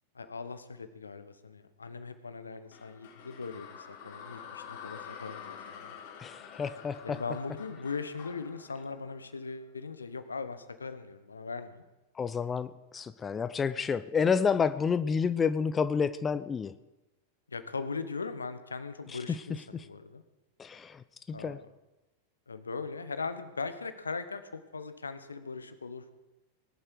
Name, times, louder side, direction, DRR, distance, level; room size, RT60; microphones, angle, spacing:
voice 1, 0.1-5.9 7.0-11.8 17.5-20.2 21.3-21.6 22.5-26.0, left 4 dB, 75° left, 11 dB, 1.1 m, -39 dB
sound 1, 2.7-9.9, left 7 dB, 50° left, 3.3 m, -48 dB
voice 2, 6.2-7.2 12.2-16.7 19.1-19.2 19.7-19.9 20.6-21.6, left 6 dB, 20° left, 14 dB, 0.5 m, -30 dB
20.5 x 11.0 x 4.8 m, 1.1 s
figure-of-eight pair, 90°, 0 cm